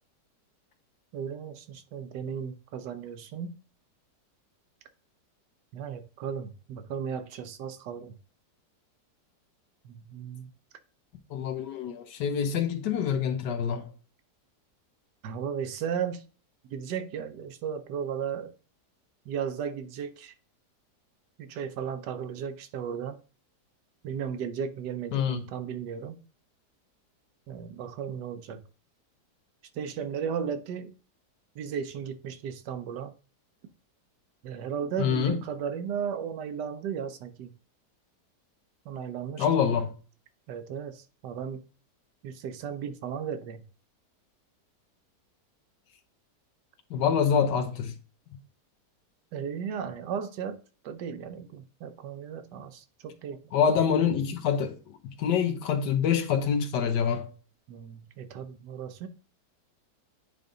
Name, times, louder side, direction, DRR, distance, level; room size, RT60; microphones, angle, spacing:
voice 1, 1.1-3.5 5.7-8.1 9.8-10.5 15.2-16.2 16.6-18.5 19.3-20.3 21.4-23.2 24.0-26.2 27.5-28.6 29.7-30.9 31.5-33.1 34.4-37.5 38.9-39.5 40.5-41.6 42.2-43.6 49.3-50.6 50.8-53.4 57.7-59.1, right 7 dB, 80° right, 1.4 m, -35 dB
voice 2, 11.3-13.9 25.1-25.5 35.0-35.4 39.4-39.9 46.9-47.9 53.5-57.3, left 7 dB, 85° left, 1.5 m, -26 dB
9.2 x 3.5 x 3.8 m
omnidirectional pair, 1.8 m